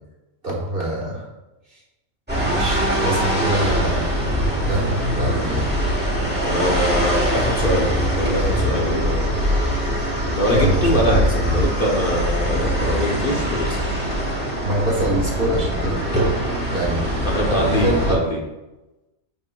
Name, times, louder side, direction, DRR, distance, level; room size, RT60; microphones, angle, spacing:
voice 1, 0.4-1.3 1.7-1.8 2.4-4.1 4.6-5.7 10.4-11.2 13.4-13.5 14.6-16.0 16.7-17.1 17.3-18.4, right 1 dB, 40° right, -3 dB, 1.5 m, -25 dB
sound 1, 2.3-18.1, equal, 5° right, 1.3 m, -22 dB
voice 2, 6.4-9.4 10.4-13.8 17.2-18.4, equal, 45° left, -2 dB, 1.0 m, -23 dB
11.5 x 4.3 x 2.3 m, 1.0 s
omnidirectional pair, 1.5 m